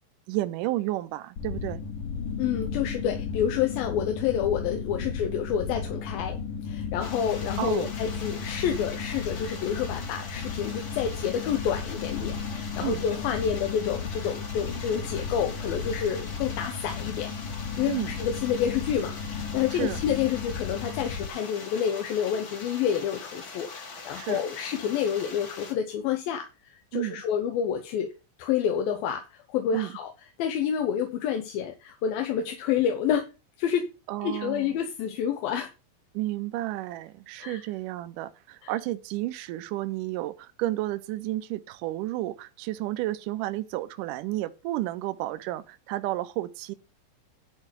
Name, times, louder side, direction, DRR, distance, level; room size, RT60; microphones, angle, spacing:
voice 1, 0.3-1.8 7.6-7.9 12.8-13.0 17.9-18.1 19.7-20.0 24.2-24.4 26.9-27.2 29.7-29.9 34.1-34.7 36.1-46.8, right 16 dB, 80° right, 2.1 m, -31 dB
sound 1, 1.4-21.3, left 6 dB, 70° left, 2.9 m, -34 dB
voice 2, 2.4-6.4 6.6-28.1 28.4-30.1 30.4-33.3 33.6-33.9 34.2-35.7 37.4-37.6 38.6-38.7, left 8 dB, 90° left, 2.9 m, -29 dB
sound 2, 7.0-25.7, left 4 dB, 45° left, 1.2 m, -42 dB
11.0 x 4.2 x 7.4 m
omnidirectional pair, 4.0 m